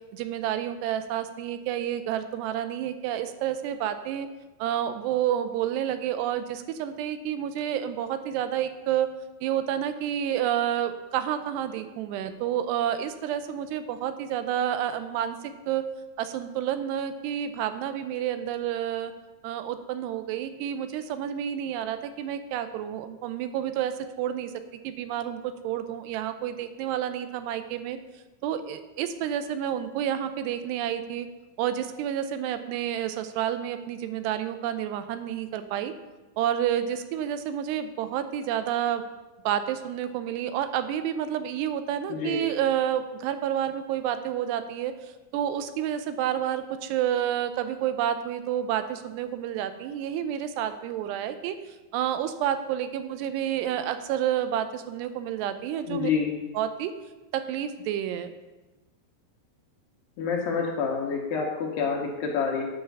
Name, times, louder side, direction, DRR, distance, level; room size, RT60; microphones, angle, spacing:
voice 1, 0.1-4.3 4.6-9.1 9.4-15.4 15.7-15.8 16.2-19.1 19.4-23.9 24.2-24.5 24.8-28.0 28.4-31.3 31.6-35.9 36.4-39.0 39.5-44.9 45.3-51.6 51.9-56.1 56.5-56.9 57.3-58.3, right 10 dB, 85° right, 9 dB, 2.8 m, -29 dB
voice 2, 42.1-42.5 55.9-56.4 60.2-62.6, left 5 dB, 70° left, 1 dB, 2.6 m, -28 dB
9.2 x 5.6 x 6.6 m, 1.1 s
omnidirectional pair, 4.8 m